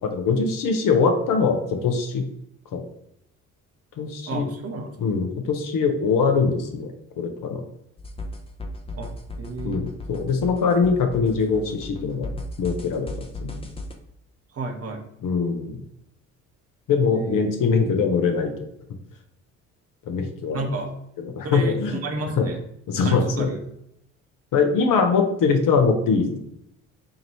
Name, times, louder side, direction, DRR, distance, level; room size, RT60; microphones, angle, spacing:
voice 1, 0.0-2.2 2.7-2.8 4.0-4.5 5.0-7.6 9.6-12.3 12.6-13.6 15.2-15.8 16.9-18.7 20.1-20.6 21.2-22.0 22.4-22.5 22.9-23.5 24.5-26.5, left 5 dB, 55° left, 5 dB, 0.8 m, -22 dB
voice 2, 4.3-5.0 8.9-9.1 9.4-9.9 14.5-15.0 17.1-17.4 20.5-20.9 21.4-22.6 22.9-23.6, right 2 dB, 35° right, 3 dB, 0.9 m, -31 dB
sound 1, 8.0-13.9, left 1 dB, 15° left, 0.7 m, -36 dB
4.9 x 2.6 x 3.0 m, 0.76 s
hypercardioid pair, 55°, 39 cm